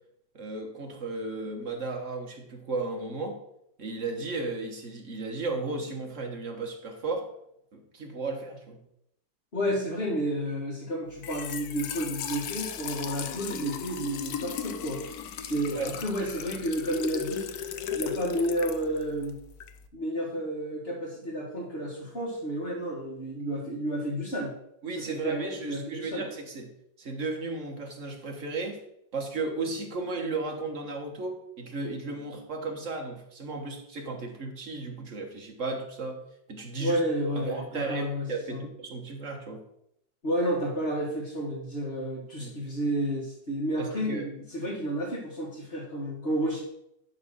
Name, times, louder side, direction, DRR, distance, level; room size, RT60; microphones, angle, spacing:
voice 1, 0.3-3.4 3.8-7.3 7.7-8.8 15.7-15.9 24.8-26.7 27.0-28.8 29.1-36.2 36.5-37.0 37.3-39.6 42.4-42.5 43.8-44.3, right 3 dB, 45° right, 2 dB, 1.6 m, -34 dB
voice 2, 9.5-15.0 15.4-17.5 17.9-19.4 19.9-24.5 25.0-26.2 36.8-38.6 40.2-46.6, equal, 30° left, -6 dB, 2.1 m, -31 dB
Trickle dribble / Fill (with liquid), 11.1-19.9, left 8 dB, 65° left, 1.0 m, -37 dB
11.0 x 3.9 x 6.3 m, 0.76 s
omnidirectional pair, 2.1 m